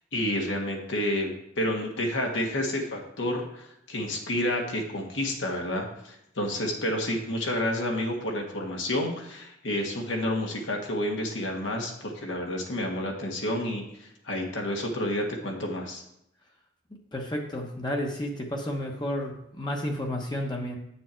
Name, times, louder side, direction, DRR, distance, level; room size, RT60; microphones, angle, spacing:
voice 1, 0.0-16.0, left 1 dB, 80° left, 1 dB, 1.7 m, -30 dB
voice 2, 17.1-20.8, left 1 dB, 25° left, 0 dB, 1.0 m, -31 dB
8.4 x 6.9 x 4.4 m, 0.78 s
head